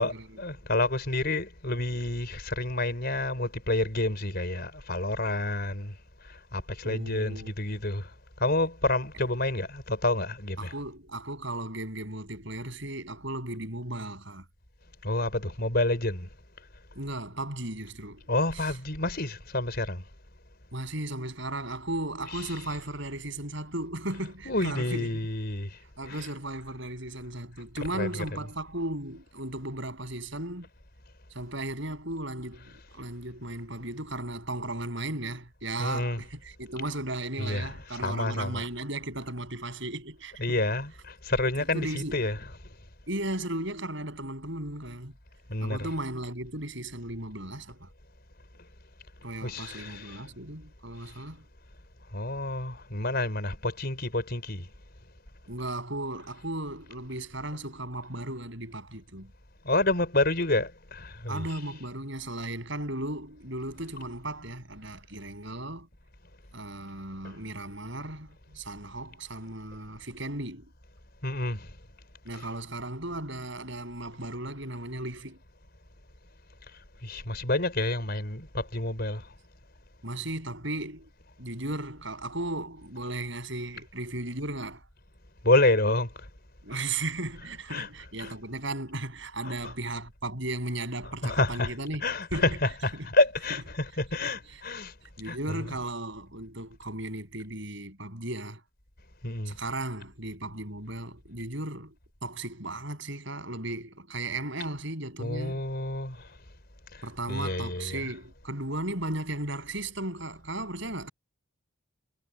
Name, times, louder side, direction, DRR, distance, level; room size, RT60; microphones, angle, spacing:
voice 1, 0.0-6.0 6.2-8.1 8.4-10.7 15.0-16.3 18.3-20.0 22.3-22.4 24.5-25.8 26.1-26.2 27.9-28.2 35.8-36.2 37.4-37.7 38.0-38.7 40.4-42.5 45.5-45.9 49.4-50.3 52.1-54.7 59.6-61.5 67.2-67.4 71.2-71.8 77.0-79.3 85.4-86.3 86.7-86.8 87.7-87.9 88.2-88.3 89.4-89.7 91.2-91.7 92.0-94.9 95.2-95.7 99.2-99.6 105.2-106.4 106.9-107.0 107.3-108.1, left 2 dB, 45° left, 5.2 m, -29 dB
voice 2, 6.8-7.8 10.6-14.4 16.9-18.2 18.5-18.7 20.7-25.1 26.0-30.7 31.3-40.6 41.6-42.2 43.1-45.1 45.6-47.9 49.2-51.4 55.5-59.3 61.3-65.9 66.5-68.3 68.5-70.6 72.2-75.4 80.0-81.1 81.4-84.8 86.6-92.0 92.3-92.6 92.9-93.1 94.2-94.3 95.2-98.6 99.5-101.9 102.2-105.6 107.0-111.1, right 2 dB, 60° right, 7.7 m, -36 dB
head